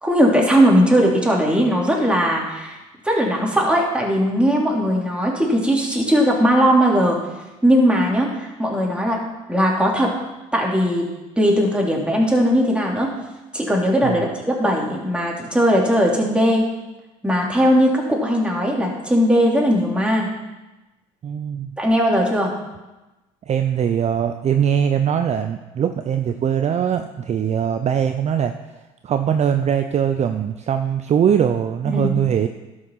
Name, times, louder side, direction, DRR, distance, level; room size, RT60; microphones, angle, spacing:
voice 1, 0.0-2.8 3.0-7.2 7.6-9.2 9.5-10.1 10.5-11.1 11.4-13.1 13.5-16.6 17.2-20.3 21.8-22.5 31.9-32.1, equal, 5° right, -2 dB, 3.1 m, -18 dB
voice 2, 21.2-21.7 23.5-28.5 29.0-32.5, right 8 dB, 40° right, 8 dB, 0.6 m, -21 dB
12.0 x 6.5 x 5.9 m, 1.1 s
hypercardioid pair, 70°, 17 cm